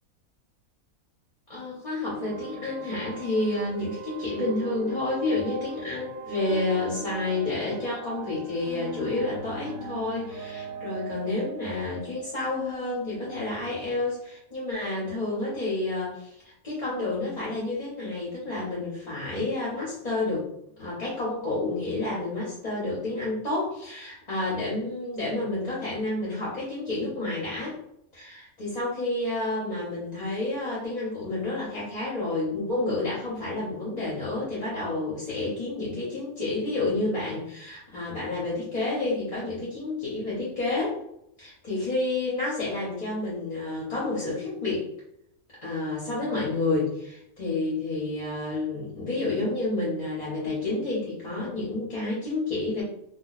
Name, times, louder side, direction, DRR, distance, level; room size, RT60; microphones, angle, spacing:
voice 1, 1.5-20.5 20.8-27.8 28.1-41.0 41.4-44.9 45.6-52.8, left 2 dB, 35° left, -6 dB, 0.8 m, -30 dB
sound 1, 2.1-13.3, right 4 dB, 70° right, 0.9 m, -39 dB
2.3 x 2.2 x 3.9 m, 0.76 s
omnidirectional pair, 1.5 m